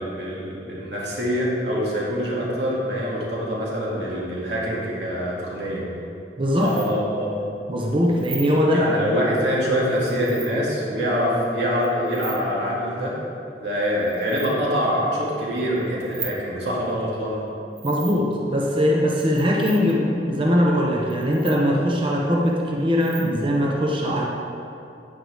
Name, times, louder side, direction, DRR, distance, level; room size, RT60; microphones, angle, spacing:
voice 1, 0.0-5.8 6.6-7.4 8.7-13.2 13.6-17.4, equal, 70° right, -5 dB, 2.4 m, -25 dB
voice 2, 6.4-6.7 7.7-8.9 17.8-24.2, equal, 30° right, -2 dB, 0.9 m, -21 dB
sound 1, 6.6-6.9 8.1-8.5 9.9-10.5 11.8-12.4 13.8-14.5 15.6-16.4 17.8-18.3 19.1-19.9 21.1-21.6 22.3-22.5 22.9-23.3, right 4 dB, 50° right, 1.6 m, -37 dB
10.0 x 9.4 x 3.6 m, 2.7 s
head